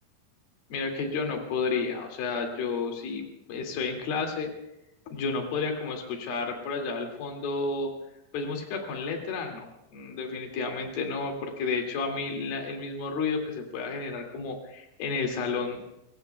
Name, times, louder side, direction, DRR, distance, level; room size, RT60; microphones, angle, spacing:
voice 1, 0.7-3.2 3.5-4.5 5.1-7.9 8.3-9.7 9.9-15.8, left 4 dB, 65° left, 2 dB, 4.1 m, -31 dB
26.5 x 20.5 x 2.3 m, 0.86 s
omnidirectional pair, 4.8 m